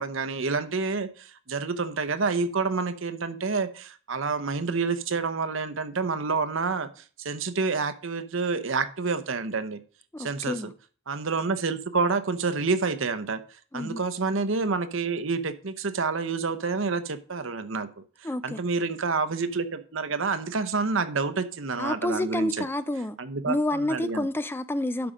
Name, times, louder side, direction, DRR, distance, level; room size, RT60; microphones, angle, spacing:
voice 1, 0.0-6.9 7.2-9.8 10.2-10.6 11.1-13.4 13.7-17.9 18.2-22.7 23.2-24.3, right 4 dB, 65° right, 0.9 m, -28 dB
voice 2, 10.1-10.7 13.7-14.0 18.2-18.6 21.8-23.2 23.5-25.1, left 1 dB, 10° left, 0.4 m, -29 dB
11.5 x 5.2 x 5.0 m
head